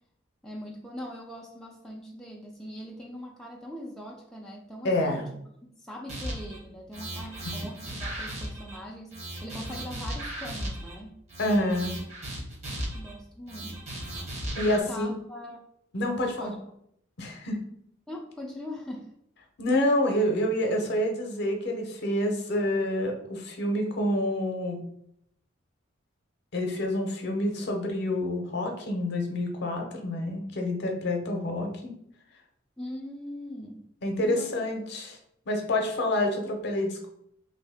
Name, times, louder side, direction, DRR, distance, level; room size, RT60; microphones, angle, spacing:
voice 1, 0.4-5.3 5.8-11.1 12.9-15.6 16.4-16.6 18.1-19.1 32.8-33.8 34.2-34.5, equal, ahead, -2 dB, 0.4 m, -41 dB
voice 2, 4.8-5.2 11.4-12.0 14.6-15.2 15.9-16.5 17.2-17.6 19.6-24.8 26.5-31.9 34.0-35.2 35.5-37.1, left 1 dB, 60° left, 2 dB, 0.7 m, -28 dB
sound 1, 6.1-6.6 6.9-8.8 9.1-10.9 11.3-13.1 13.5-14.8, right 1 dB, 35° right, 0.9 m, -36 dB
3.1 x 2.7 x 3.4 m, 0.72 s
head